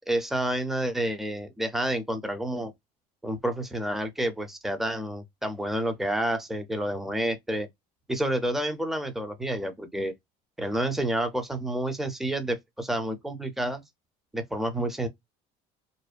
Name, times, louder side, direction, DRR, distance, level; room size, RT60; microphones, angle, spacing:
voice 1, 0.1-2.7 3.2-7.7 8.1-10.1 10.6-13.8 14.3-15.1, right 1 dB, ahead, 0.5 m, -29 dB
2.6 x 2.1 x 2.4 m
supercardioid pair, 105°, 18 cm